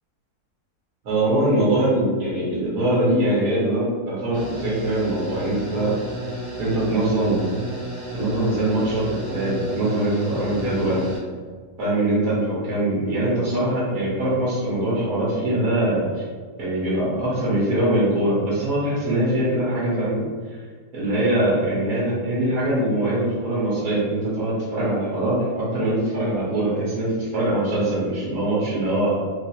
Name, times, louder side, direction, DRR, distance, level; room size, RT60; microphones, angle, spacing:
voice 1, 1.0-5.9 6.6-7.5 8.1-11.0 11.8-16.2 16.6-20.2 20.9-29.2, right 1 dB, 70° right, -8 dB, 1.5 m, -22 dB
sound 1, 4.3-11.2, equal, 85° right, 1.7 m, -33 dB
4.3 x 2.5 x 2.8 m, 1.6 s
omnidirectional pair, 1.6 m